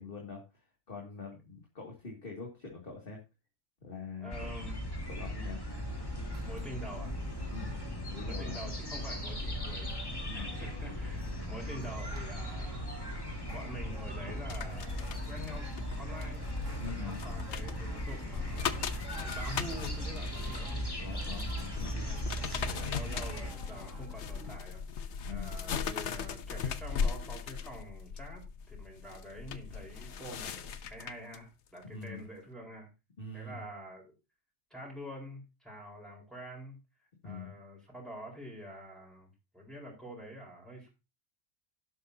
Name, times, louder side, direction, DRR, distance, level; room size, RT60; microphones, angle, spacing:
voice 1, 0.0-3.2 3.8-4.5 5.1-5.6 7.5-7.7 8.1-8.6 10.2-10.5 16.8-17.3 21.0-22.1 25.2-25.5 31.9-32.2 33.2-33.6 37.2-37.6, left 4 dB, 45° left, 0 dB, 2.5 m, -44 dB
voice 2, 4.2-4.8 6.4-7.1 8.2-9.9 10.3-12.9 13.5-15.7 16.0-16.5 16.8-20.8 22.0-28.4 28.7-32.9 33.3-34.1 34.7-36.8 37.2-40.9, equal, ahead, -3 dB, 4.3 m, -46 dB
sound 1, 4.3-23.5, equal, 20° left, 2.1 m, -38 dB
sound 2, 5.7-24.6, right 3 dB, 75° right, 2.5 m, -52 dB
sound 3, 14.5-31.4 31.8-32.0, left 6 dB, 65° left, 1.1 m, -39 dB
11.5 x 11.5 x 2.7 m, 0.28 s
omnidirectional pair, 1.3 m